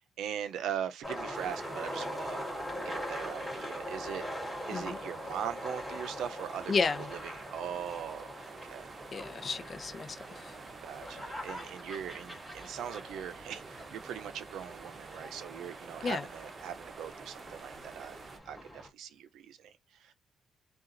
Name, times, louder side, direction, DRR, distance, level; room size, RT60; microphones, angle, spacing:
voice 1, 0.2-2.4 2.8-4.2 4.7-6.7 7.0-8.9 10.8-18.2 18.5-20.1, right 9 dB, 80° right, 0.5 m, -40 dB
sound 1, 1.0-18.9, equal, 5° right, 2.7 m, -42 dB
sound 2, 1.3-18.4, right 4 dB, 40° right, 0.7 m, -49 dB
voice 2, 6.7-7.1 9.1-10.5 16.0-16.2, left 4 dB, 45° left, 0.6 m, -32 dB
3.9 x 2.4 x 2.5 m
cardioid pair, 90°, 0 cm